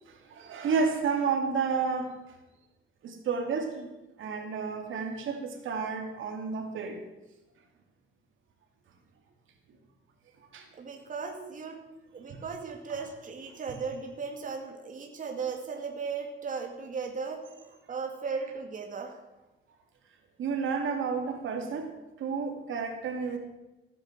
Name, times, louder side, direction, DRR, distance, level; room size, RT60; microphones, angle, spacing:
voice 1, 0.3-2.1 3.0-3.9 4.2-7.0 10.5-10.7 20.4-21.9 22.2-23.4, right 5 dB, 75° right, 4 dB, 2.6 m, -31 dB
voice 2, 10.8-11.8 12.1-17.4 17.7-19.2, right 5 dB, 40° right, 2 dB, 2.3 m, -36 dB
15.5 x 9.9 x 7.5 m, 1.0 s
cardioid pair, 140°, 21 cm